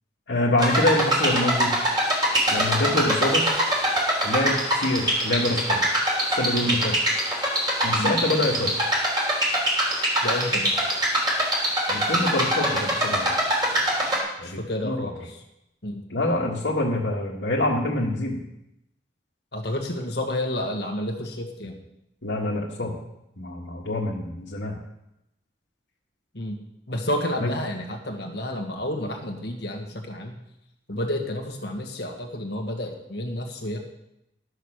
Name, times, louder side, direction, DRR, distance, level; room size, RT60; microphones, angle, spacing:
voice 1, 0.3-1.7 2.5-3.4 4.2-5.9 6.4-7.2 7.8-8.7 11.9-13.3 14.4-15.1 16.1-18.4 22.2-23.0 23.4-24.8 27.4-27.5, left 1 dB, 85° left, -6 dB, 1.8 m, -25 dB
sound 1, 0.6-14.2, right 1 dB, 25° right, 3.3 m, -23 dB
voice 2, 10.2-10.7 14.4-15.4 15.8-16.0 19.5-21.8 26.3-26.6 26.9-30.4 30.9-33.8, left 1 dB, 60° left, 2 dB, 1.8 m, -30 dB
12.5 x 6.7 x 6.5 m, 0.84 s
head